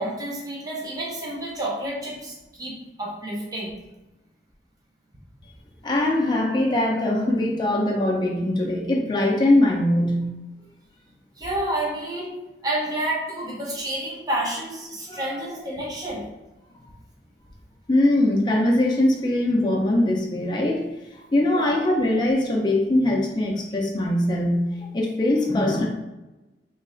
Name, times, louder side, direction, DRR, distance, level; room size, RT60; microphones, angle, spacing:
voice 1, 0.0-3.7 11.4-12.4 12.6-16.2 21.5-21.7, right 1 dB, 20° right, -3 dB, 0.6 m, -29 dB
voice 2, 5.8-10.3 15.1-15.2 17.9-20.8 21.1-25.9, left 1 dB, 25° left, -2 dB, 0.4 m, -22 dB
3.1 x 2.3 x 3.7 m, 1.0 s
head